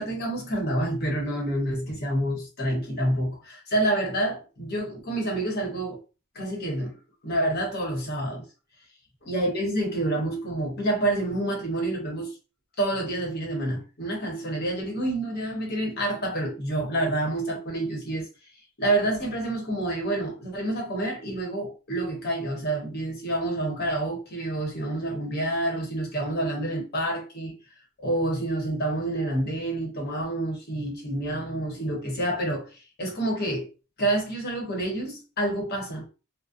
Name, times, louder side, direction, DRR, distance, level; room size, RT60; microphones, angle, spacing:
voice 1, 0.0-6.0 6.3-7.0 7.2-8.4 9.2-12.3 12.8-18.3 18.8-27.5 28.0-33.7 34.0-36.1, right 1 dB, 45° left, 0.9 m, -28 dB
2.4 x 2.1 x 2.5 m
head